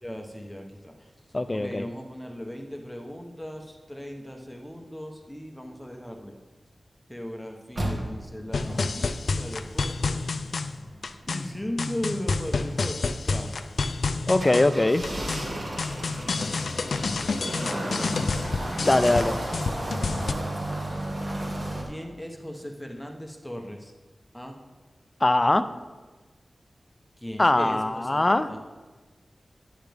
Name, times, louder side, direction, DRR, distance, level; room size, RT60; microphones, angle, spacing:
voice 1, 0.0-1.1 1.5-6.3 7.1-10.2 11.3-13.6 17.1-18.3 21.8-23.9 24.3-24.6 27.2-28.6, equal, ahead, 2 dB, 0.9 m, -37 dB
voice 2, 1.3-1.9 14.3-15.0 18.8-19.4 25.2-25.6 27.4-28.5, left 2 dB, 30° left, 11 dB, 0.4 m, -21 dB
sound 1, 7.7-21.8, right 1 dB, 55° right, 2.1 m, -34 dB
sound 2, 8.5-20.3, left 4 dB, 90° left, 0.4 m, -29 dB
9.9 x 9.0 x 3.5 m, 1.3 s
wide cardioid pair, 95°, 0 cm